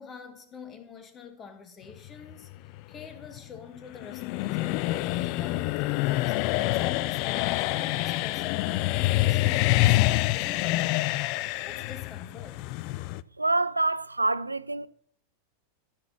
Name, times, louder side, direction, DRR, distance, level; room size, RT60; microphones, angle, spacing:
voice 1, 0.0-11.2 11.6-12.7, left 6 dB, 25° left, 1.5 m, -46 dB
sound 1, 2.0-13.2, left 18 dB, 45° left, 0.3 m, -26 dB
voice 2, 13.4-14.9, right 2 dB, 85° right, 0.3 m, -26 dB
15.0 x 6.1 x 4.2 m
figure-of-eight pair, 90°, 0 cm